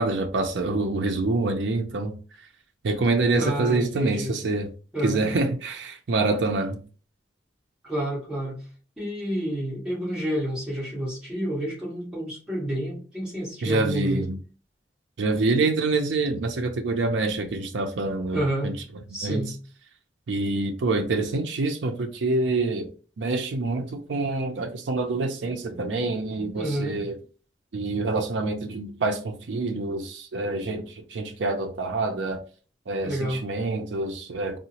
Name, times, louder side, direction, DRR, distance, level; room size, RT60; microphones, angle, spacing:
voice 1, 0.0-2.2 2.8-4.7 5.0-6.8 13.6-14.4 15.2-18.7 19.2-19.4 20.3-22.9 23.2-27.2 27.7-32.4 32.9-34.6, right 3 dB, 85° right, 0.5 m, -26 dB
voice 2, 3.4-4.3 4.9-5.2 7.8-8.6 9.0-14.2 18.3-18.7 19.1-19.5 26.5-27.0 33.0-33.4, right 1 dB, 5° right, 1.6 m, -29 dB
3.8 x 2.0 x 2.8 m
head